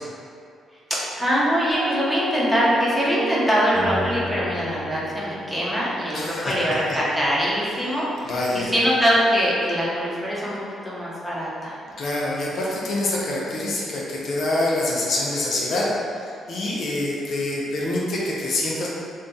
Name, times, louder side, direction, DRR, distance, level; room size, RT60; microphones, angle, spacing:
voice 1, 1.2-10.5 10.8-11.8, equal, ahead, -8 dB, 0.9 m, -23 dB
sound 1, 1.7-6.9, right 1 dB, 35° right, 0.5 m, -32 dB
voice 2, 6.1-6.6 7.8-8.7 12.0-18.9, left 1 dB, 60° left, -5 dB, 0.5 m, -26 dB
2.6 x 2.3 x 3.7 m, 2.4 s
cardioid pair, 90°, 0 cm